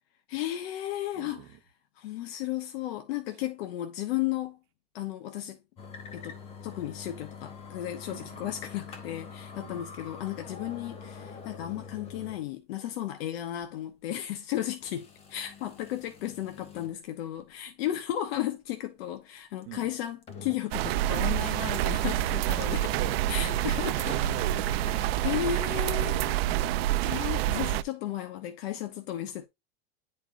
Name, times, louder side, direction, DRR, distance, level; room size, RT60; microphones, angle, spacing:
voice 1, 0.3-1.6 2.0-4.6 4.9-5.6 6.1-23.0 23.3-24.1 25.2-26.4 27.0-29.5, left 12 dB, 75° left, 0.9 m, -34 dB
voice 2, 1.2-1.6 3.3-3.4 8.1-8.5 9.6-9.9 19.7-19.9 23.0-23.3 23.6-25.3 26.1-26.5, right 14 dB, 50° right, 1.1 m, -42 dB
sound 1, 5.8-12.5 12.8-12.9 13.6-13.7 14.8-17.0 17.4-17.5 19.6-20.7 21.0-25.5, left 6 dB, 20° left, 0.8 m, -45 dB
sound 2, 20.7-27.8, right 14 dB, 80° right, 0.5 m, -27 dB
9.6 x 4.4 x 2.5 m
supercardioid pair, 165°, 31 cm